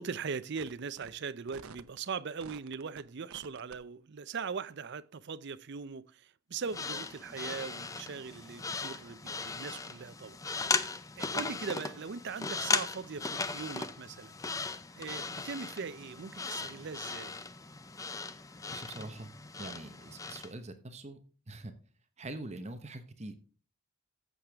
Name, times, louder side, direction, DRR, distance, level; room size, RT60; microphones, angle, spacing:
voice 1, 0.0-10.9 11.2-14.4 15.0-17.4, right 5 dB, 50° right, 0.5 m, -40 dB
sound 1, 0.6-0.7 1.0-1.1 1.5-2.0 2.4-3.0 3.3-3.8, right 5 dB, 75° right, 0.8 m, -48 dB
sound 2, 6.6-20.5, left 4 dB, 15° left, 0.5 m, -37 dB
voice 2, 18.7-19.3 19.6-21.2 21.5-21.7 22.2-23.3, right 2 dB, 30° right, 0.9 m, -43 dB
14.5 x 6.6 x 3.4 m
head